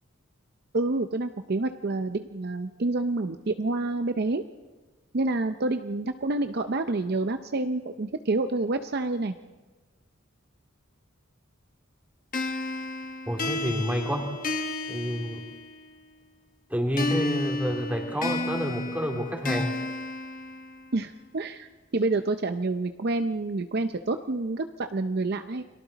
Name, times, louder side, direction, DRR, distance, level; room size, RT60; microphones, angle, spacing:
voice 1, 0.7-4.4 5.1-9.3 20.9-25.6, right 2 dB, 50° right, 8 dB, 0.6 m, -28 dB
sound 1, 12.3-16.0 17.0-21.0, left 2 dB, 40° left, 1.3 m, -32 dB
voice 2, 13.3-14.3 14.9-15.4 16.7-19.7, equal, 10° right, 1 dB, 2.7 m, -29 dB
29.5 x 23.0 x 4.1 m, 1.3 s
head